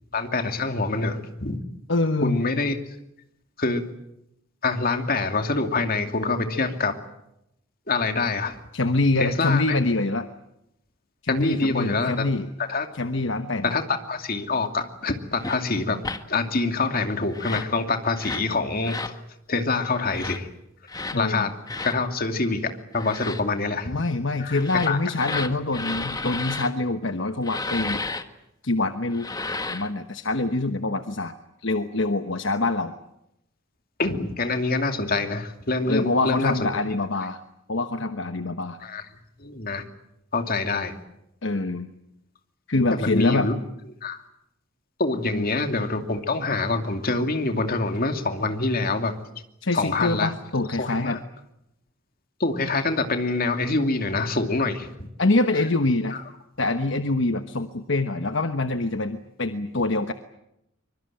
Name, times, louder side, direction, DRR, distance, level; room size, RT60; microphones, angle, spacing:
voice 1, 0.1-1.6 2.2-2.8 3.6-3.8 4.6-6.9 7.9-8.6 9.2-9.8 11.3-12.2 12.7-12.9 13.6-16.0 16.3-19.2 19.5-20.5 21.2-21.5 21.8-24.0 24.4-25.4 29.5-29.6 34.0-36.7 38.8-39.0 39.4-39.8 40.3-40.9 42.9-43.5 44.0-44.2 45.0-49.1 49.7-50.3 50.8-51.2 52.4-54.9 56.1-56.2, left 3 dB, 45° left, 6 dB, 2.6 m, -25 dB
voice 2, 1.9-2.4 8.7-10.3 11.2-12.5 12.9-13.7 21.1-21.5 23.9-28.0 28.6-29.3 29.6-31.3 31.6-32.9 35.9-37.4 37.7-38.8 41.4-41.9 42.7-43.5 45.3-45.4 49.6-51.2 55.2-56.2 56.6-60.1, left 2 dB, 65° left, 8 dB, 1.2 m, -25 dB
sound 1, 15.4-15.6 16.0-16.2 17.3-17.7 18.2-18.5 18.8-19.2 20.0-20.4 20.9-21.2 21.7-22.0 22.9-23.4 24.5-26.7 27.4-28.2 29.1-29.9, left 3 dB, 20° left, 1.5 m, -32 dB
24.5 x 24.0 x 8.9 m, 0.84 s
head